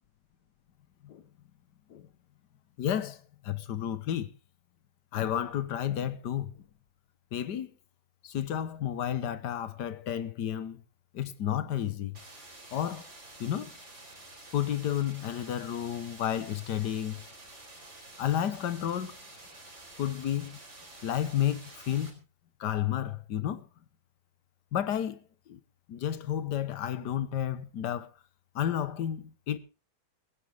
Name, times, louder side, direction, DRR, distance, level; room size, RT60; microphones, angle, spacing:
voice 1, 2.8-4.3 5.1-6.5 7.3-7.7 8.2-10.8 11.1-12.2 12.7-13.1 13.4-13.7 14.5-17.2 18.2-19.2 20.0-20.6 21.0-22.1 22.6-23.7 24.7-25.6 25.9-28.1 28.5-29.6, left 10 dB, 75° left, 1.7 m, -31 dB
sound 1, 12.1-22.1, right 2 dB, 40° right, 4.3 m, -50 dB
16.5 x 16.0 x 3.4 m
omnidirectional pair, 1.9 m